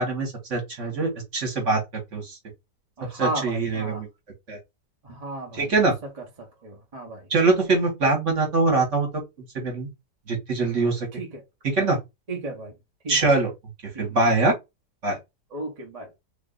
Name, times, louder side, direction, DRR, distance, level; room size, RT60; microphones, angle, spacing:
voice 1, 0.0-2.4 3.1-4.1 4.5-4.6 5.6-5.9 7.3-9.1 9.5-9.9 10.3-11.1 11.7-12.0 13.1-13.5 14.0-14.5 15.0-15.2, right 3 dB, 50° right, 1.5 m, -23 dB
voice 2, 3.0-4.0 5.0-5.7 6.4-7.3 11.1-11.4 12.3-12.7 13.0-13.3 13.9-14.1 15.5-16.2, right 2 dB, 30° right, 0.9 m, -34 dB
3.1 x 2.5 x 3.8 m
omnidirectional pair, 1.7 m